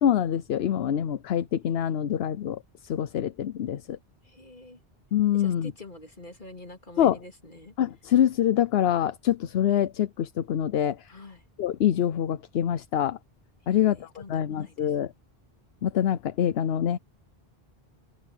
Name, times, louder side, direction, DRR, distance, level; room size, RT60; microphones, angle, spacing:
voice 1, 0.0-4.0 5.1-5.7 7.0-7.2 7.8-11.1 11.6-13.2 13.7-15.1 15.8-17.0, left 10 dB, 80° left, 0.9 m, -25 dB
voice 2, 4.2-4.8 5.3-7.7 11.1-11.4 13.7-14.7, left 2 dB, 50° left, 3.7 m, -46 dB
open air
omnidirectional pair, 1.0 m